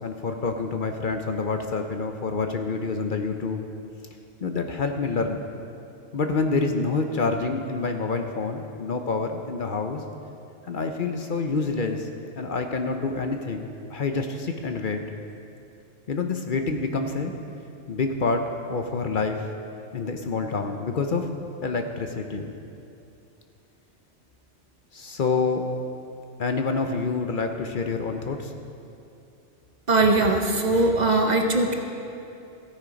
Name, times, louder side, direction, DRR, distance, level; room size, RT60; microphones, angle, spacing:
voice 1, 0.0-3.6 4.4-5.4 6.1-10.0 10.6-12.1 12.4-15.0 16.1-17.3 17.9-19.5 19.9-21.3 21.6-22.5 24.9-25.7 26.4-28.5, left 4 dB, 50° left, 5 dB, 0.8 m, -27 dB
voice 2, 29.9-31.7, right 2 dB, 45° right, 4 dB, 0.9 m, -20 dB
15.0 x 8.8 x 5.1 m, 2.6 s
omnidirectional pair, 1.1 m